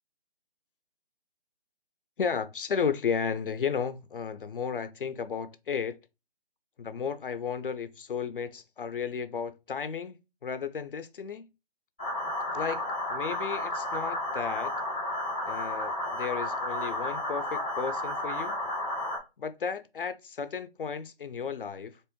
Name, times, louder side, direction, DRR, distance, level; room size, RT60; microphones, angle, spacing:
voice 1, 2.2-6.0 6.8-11.5 12.5-14.7 15.5-18.6 19.4-22.0, left 6 dB, 65° left, 0.5 m, -34 dB
sound 1, 12.0-19.2, left 1 dB, 10° left, 0.4 m, -32 dB
3.4 x 3.0 x 3.0 m
figure-of-eight pair, 150°, 30 cm